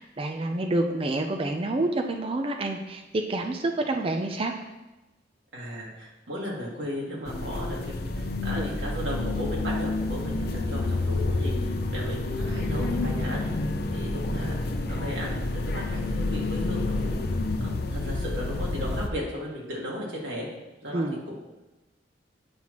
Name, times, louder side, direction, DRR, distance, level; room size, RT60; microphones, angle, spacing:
voice 1, 0.0-4.5 8.6-8.7 14.3-14.4 20.9-21.2, right 2 dB, 30° right, 4 dB, 0.5 m, -28 dB
voice 2, 5.5-13.5 13.9-20.5 20.8-21.3, equal, 90° right, -3 dB, 2.0 m, -36 dB
sound 1, 7.2-19.1, left 2 dB, 55° left, 0.5 m, -29 dB
8.7 x 5.8 x 3.0 m, 1.0 s
head